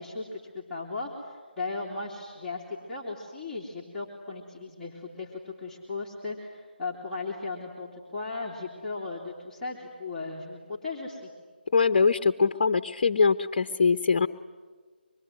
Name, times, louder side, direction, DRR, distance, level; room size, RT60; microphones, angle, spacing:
voice 1, 0.0-2.6 2.9-11.3, left 3 dB, 5° left, -8 dB, 3.0 m, -36 dB
voice 2, 11.7-14.3, left 5 dB, 45° left, 10 dB, 1.0 m, -22 dB
25.5 x 22.5 x 9.4 m, 1.5 s
figure-of-eight pair, 160°, 6 cm